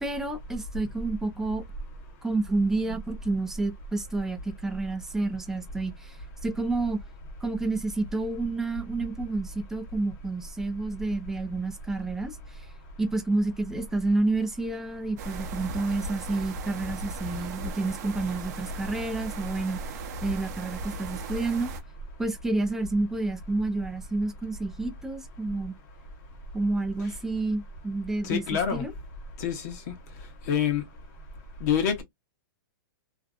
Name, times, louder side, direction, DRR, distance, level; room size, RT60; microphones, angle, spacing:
voice 1, 0.0-1.6 2.2-6.2 6.4-7.0 7.4-12.4 13.0-19.8 20.2-21.7 22.2-25.7 26.5-28.4 28.7-28.9, right 2 dB, 5° right, 0.3 m, -29 dB
sound 1, 15.2-21.8, right 3 dB, 45° right, 0.6 m, -37 dB
voice 2, 28.2-28.8 29.4-29.9 30.5-30.8 31.6-32.0, left 8 dB, 50° left, 0.9 m, -26 dB
2.6 x 2.0 x 2.4 m
hypercardioid pair, 155°, 12 cm